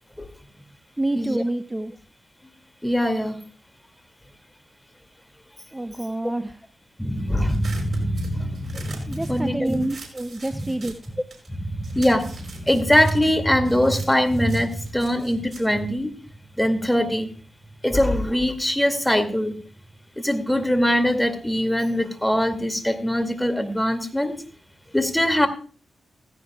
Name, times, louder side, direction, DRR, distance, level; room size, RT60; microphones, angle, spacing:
voice 1, 1.0-1.9 5.7-6.6 9.1-10.9, right 1 dB, 15° right, 9 dB, 0.7 m, -27 dB
voice 2, 2.8-3.4 7.0-9.8 10.5-10.7 11.5-16.1 16.6-17.3 17.8-19.5 20.2-24.4 24.9-25.5, equal, 10° left, 8 dB, 2.3 m, -22 dB
sound 1, 7.5-11.5 11.8-16.6, right 4 dB, 55° right, 5.0 m, -43 dB
16.5 x 15.5 x 2.3 m, 0.39 s
cardioid pair, 55°, 0 cm